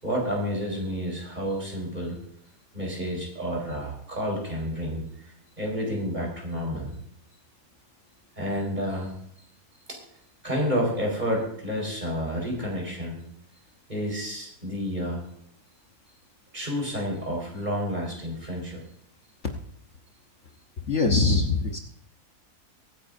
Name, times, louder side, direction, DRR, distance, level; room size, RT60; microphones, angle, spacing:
voice 1, 0.0-2.2 2.7-7.0 8.4-9.1 9.9-10.0 10.4-13.2 13.9-15.2 16.5-18.8, equal, 25° right, -1 dB, 4.9 m, -30 dB
voice 2, 20.9-21.8, left 3 dB, 50° left, 3 dB, 1.4 m, -22 dB
23.0 x 9.6 x 2.7 m, 0.70 s
omnidirectional pair, 1.6 m